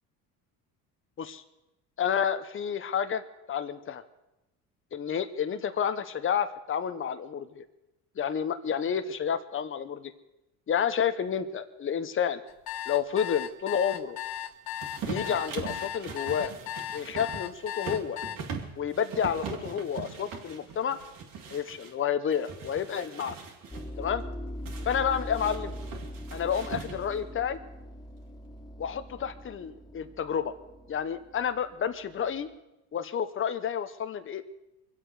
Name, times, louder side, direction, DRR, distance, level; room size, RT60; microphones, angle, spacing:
voice 1, 2.0-3.2 3.5-4.0 4.9-7.6 8.2-10.1 10.7-12.4 12.9-14.2 15.1-16.5 16.9-18.2 18.8-21.0 21.5-23.4 24.0-24.2 24.8-25.7 26.3-27.6 28.8-30.5 30.9-32.5 32.9-34.4, left 8 dB, 30° left, 10 dB, 1.0 m, -30 dB
sound 1, 12.5-18.4, left 11 dB, 60° left, 1.3 m, -36 dB
sound 2, 14.8-21.9 22.3-23.9 24.7-27.2, right 5 dB, 55° right, 2.9 m, -40 dB
sound 3, 23.7-32.4, equal, 10° left, 0.8 m, -41 dB
23.5 x 8.1 x 6.4 m, 0.95 s
supercardioid pair, 100°, 40 cm